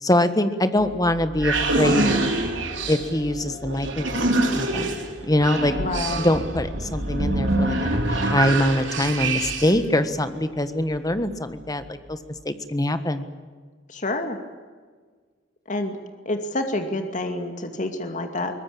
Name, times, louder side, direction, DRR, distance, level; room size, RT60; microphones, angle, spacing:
voice 1, 0.0-2.3 2.9-4.2 4.5-5.7 6.1-12.2 12.4-13.3, left 1 dB, 20° left, 10 dB, 1.5 m, -23 dB
sound 1, 0.8-9.9, right 2 dB, 75° right, 4.2 m, -25 dB
voice 2, 5.8-6.3 13.9-14.4 15.7-16.0 16.2-18.5, left 2 dB, 40° left, 6 dB, 2.4 m, -28 dB
23.0 x 19.5 x 8.7 m, 1.5 s
head